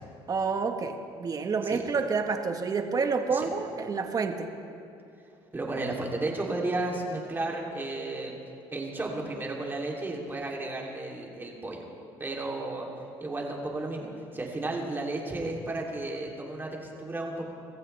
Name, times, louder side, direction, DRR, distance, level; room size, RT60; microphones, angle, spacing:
voice 1, 0.3-4.5, right 5 dB, 35° right, 6 dB, 1.5 m, -29 dB
voice 2, 5.5-8.4 8.7-11.8 12.2-12.9 13.2-17.5, right 2 dB, 20° right, -2 dB, 3.2 m, -33 dB
25.0 x 14.5 x 3.5 m, 2.8 s
supercardioid pair, 90°, 10 cm